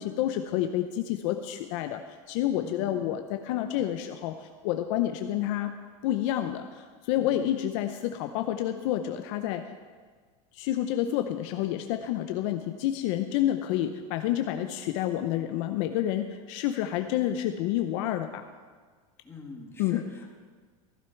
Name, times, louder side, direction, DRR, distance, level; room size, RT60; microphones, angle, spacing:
voice 1, 0.0-2.0 2.3-5.7 6.0-9.6 10.5-18.4 19.8-20.0, left 12 dB, 60° left, 7 dB, 0.7 m, -29 dB
voice 2, 2.6-3.1 7.2-7.4 19.2-20.4, left 4 dB, 15° left, 0 dB, 1.8 m, -44 dB
15.5 x 11.0 x 4.5 m, 1.5 s
supercardioid pair, 145°, 18 cm